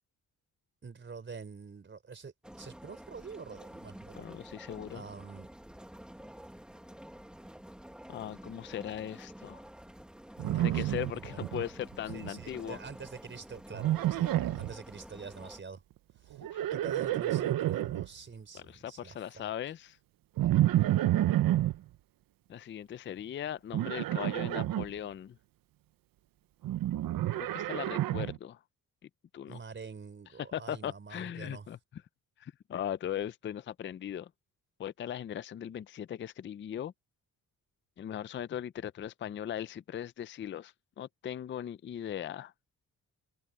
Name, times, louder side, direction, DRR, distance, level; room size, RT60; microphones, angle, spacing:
voice 1, 0.8-4.6 4.9-5.5 10.4-11.5 12.1-15.8 16.2-16.4 16.7-19.5 29.4-31.7, right 5 dB, 35° right, 4.7 m, -46 dB
sound 1, 2.4-15.6, equal, 5° right, 1.4 m, -49 dB
voice 2, 4.1-5.0 8.1-9.6 10.6-12.8 16.5-16.6 18.5-20.0 22.5-25.4 27.4-28.6 29.3-29.6 30.5-31.8 32.4-34.3 34.8-36.9 38.0-42.5, left 10 dB, 35° left, 0.4 m, -39 dB
Livestock farm animals working animals, 10.4-11.6 11.9-12.4 13.7-14.7 16.3-18.1 20.4-21.8 23.7-24.9 26.6-28.4, right 14 dB, 85° right, 0.7 m, -29 dB
wide cardioid pair, 145°, 34 cm